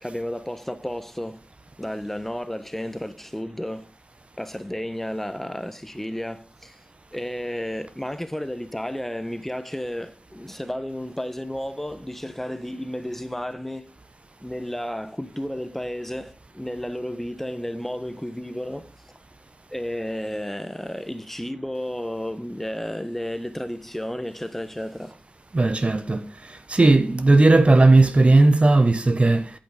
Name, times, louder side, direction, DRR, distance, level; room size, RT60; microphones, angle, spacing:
voice 1, 0.0-1.4 1.8-3.9 4.4-6.8 7.1-13.9 14.4-19.2 19.7-25.2, equal, 10° left, 1.2 m, -32 dB
voice 2, 25.5-26.3 26.7-29.5, right 2 dB, 35° right, 1.1 m, -16 dB
13.0 x 5.9 x 5.0 m
cardioid pair, 45°, 3 cm